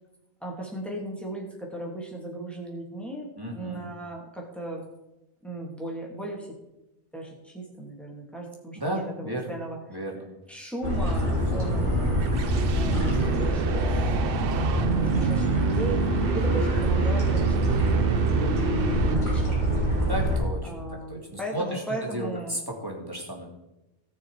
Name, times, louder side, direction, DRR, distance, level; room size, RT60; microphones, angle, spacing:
voice 1, 0.4-4.8 5.4-6.5 7.1-9.8 10.5-12.2 12.7-13.9 14.6-16.0 16.3-19.7 20.6-22.6, right 1 dB, ahead, -1 dB, 2.8 m, -37 dB
voice 2, 3.4-3.9 8.7-9.5 9.9-10.3 20.1-20.7 21.1-23.5, right 1 dB, 20° right, -1 dB, 2.8 m, -34 dB
sound 1, 10.8-20.4, right 1 dB, 80° right, 6.0 m, -25 dB
sound 2, 11.8-19.6, right 8 dB, 60° right, 0.7 m, -30 dB
18.0 x 6.2 x 5.0 m, 0.95 s
omnidirectional pair, 1.2 m